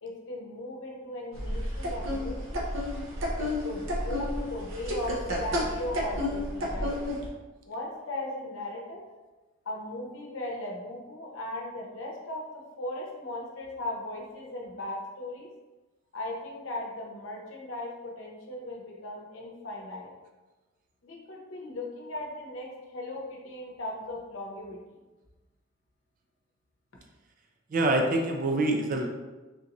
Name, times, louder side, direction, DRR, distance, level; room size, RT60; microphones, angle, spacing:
voice 1, 0.0-2.6 3.4-7.0 7.7-9.0 9.7-15.5 16.1-20.1 21.0-24.8, left 1 dB, 75° left, -2 dB, 0.8 m, -38 dB
sound 1, 1.3-7.3, left 1 dB, 70° right, 0.7 m, -31 dB
voice 2, 27.7-29.1, right 2 dB, 40° right, 3 dB, 0.4 m, -25 dB
3.8 x 2.5 x 2.9 m, 1.2 s
head